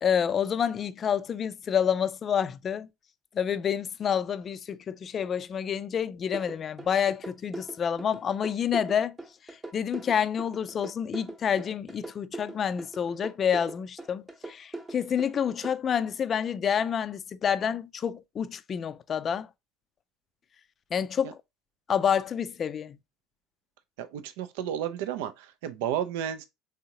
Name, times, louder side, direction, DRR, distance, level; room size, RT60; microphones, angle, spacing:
voice 1, 0.0-2.9 3.3-9.2 9.7-19.5 20.9-21.4 21.9-23.0, left 8 dB, 35° left, 0.4 m, -28 dB
sound 1, 6.3-15.7, right 2 dB, 20° right, 0.9 m, -40 dB
voice 2, 24.0-26.4, right 10 dB, 65° right, 0.4 m, -32 dB
3.6 x 3.5 x 2.8 m
figure-of-eight pair, 65°, 0 cm